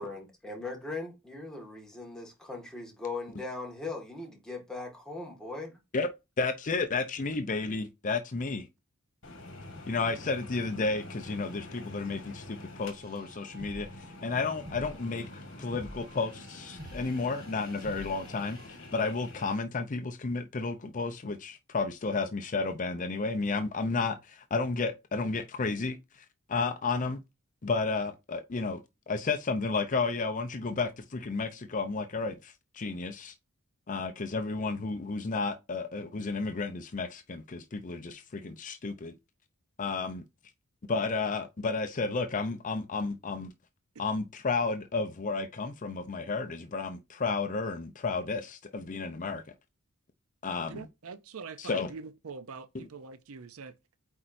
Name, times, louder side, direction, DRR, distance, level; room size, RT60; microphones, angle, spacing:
voice 1, 0.0-5.7, left 3 dB, 5° left, 1.8 m, -39 dB
voice 2, 6.4-8.7 9.9-15.3 15.6-27.2 27.6-28.8 29.1-33.3 33.9-39.1 39.8-40.2 40.9-43.5 44.0-49.4 50.4-50.9 51.6-51.9 52.7-52.9, left 4 dB, 35° left, 0.5 m, -32 dB
sound 1, 9.2-19.5, left 2 dB, 55° left, 1.5 m, -47 dB
sound 2, 12.8-18.7, right 1 dB, 40° right, 1.2 m, -49 dB
voice 3, 50.7-53.7, right 5 dB, 70° right, 0.6 m, -44 dB
8.3 x 4.4 x 2.6 m
head